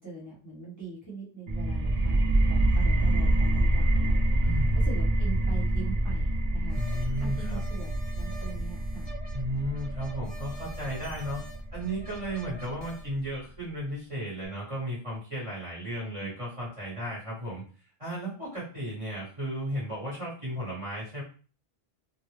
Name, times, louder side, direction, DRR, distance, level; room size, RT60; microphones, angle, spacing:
voice 1, 0.0-4.2 4.7-6.8 7.2-9.1 16.0-16.3, right 4 dB, 20° left, -7 dB, 0.8 m, -42 dB
sound 1, 1.5-12.9, right 1 dB, 55° right, 0.4 m, -27 dB
voice 2, 4.4-4.7 6.7-7.6 9.3-11.4 11.7-17.6 18.0-21.2, equal, 35° right, -7 dB, 1.1 m, -34 dB
sound 2, 6.7-13.1, right 2 dB, 40° left, 0.4 m, -48 dB
2.4 x 2.0 x 3.1 m, 0.39 s
omnidirectional pair, 1.0 m